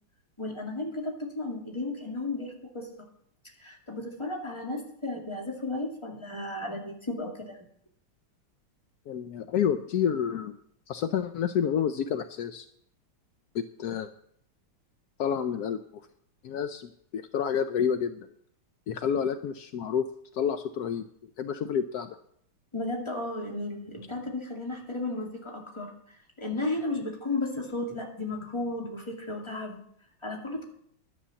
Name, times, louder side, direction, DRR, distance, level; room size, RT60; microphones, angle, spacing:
voice 1, 0.4-2.9 3.6-7.6 22.7-25.9 26.4-29.8 30.2-30.6, left 2 dB, 15° left, 0 dB, 2.2 m, -34 dB
voice 2, 9.1-10.6 10.9-12.7 13.5-14.1 15.2-15.8 16.4-18.3 18.9-20.1 20.3-21.1 21.4-22.2, left 8 dB, 75° left, 9 dB, 0.9 m, -29 dB
11.5 x 8.6 x 7.0 m, 0.67 s
omnidirectional pair, 2.3 m